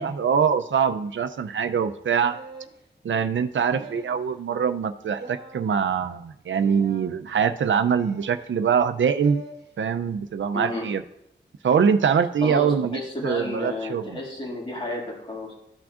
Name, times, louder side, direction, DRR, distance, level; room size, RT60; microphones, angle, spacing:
voice 1, 0.0-2.4 3.0-9.4 9.8-11.0 11.6-14.2, right 7 dB, 85° right, 9 dB, 0.5 m, -23 dB
sound 1, 2.2-2.7 3.6-4.3 5.2-5.6 6.6-7.1 8.0-8.5 9.2-9.6, right 2 dB, 60° right, 1.1 m, -43 dB
voice 2, 10.5-10.9 12.4-15.5, left 1 dB, 25° left, -3 dB, 2.2 m, -32 dB
14.0 x 6.0 x 2.5 m, 0.79 s
wide cardioid pair, 100°, 19 cm